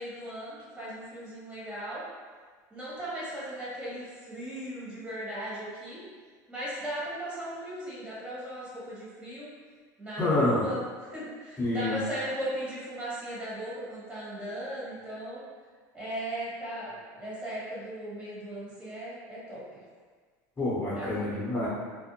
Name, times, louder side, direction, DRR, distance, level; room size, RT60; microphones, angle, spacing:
voice 1, 0.0-2.0 2.7-6.0 6.5-9.5 10.0-15.4 15.9-19.8 20.9-21.3, right 1 dB, 15° right, -9 dB, 1.2 m, -37 dB
voice 2, 10.2-10.6 11.6-11.9 20.6-21.7, left 2 dB, 25° left, -9 dB, 0.8 m, -27 dB
2.5 x 2.0 x 2.8 m, 1.5 s
supercardioid pair, 100°, 9 cm